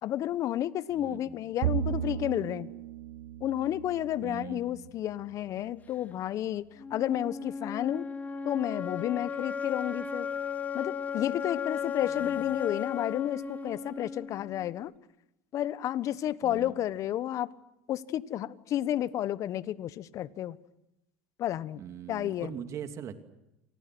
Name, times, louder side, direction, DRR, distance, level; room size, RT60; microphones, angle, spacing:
voice 1, 0.0-2.7 3.4-6.6 6.9-8.1 8.4-10.3 10.7-14.9 15.5-17.5 17.9-20.6 21.4-21.8 22.1-22.5, left 12 dB, 45° left, 1.3 m, -31 dB
voice 2, 0.9-1.5 4.2-4.9 12.2-12.4 16.4-16.7 21.8-23.2, right 9 dB, 45° right, 2.7 m, -41 dB
Bowed string instrument, 1.6-5.1, right 12 dB, 75° right, 1.0 m, -35 dB
sound 1, 6.8-14.8, left 6 dB, 20° left, 2.7 m, -35 dB
29.0 x 24.5 x 6.1 m
supercardioid pair, 100°, 7 cm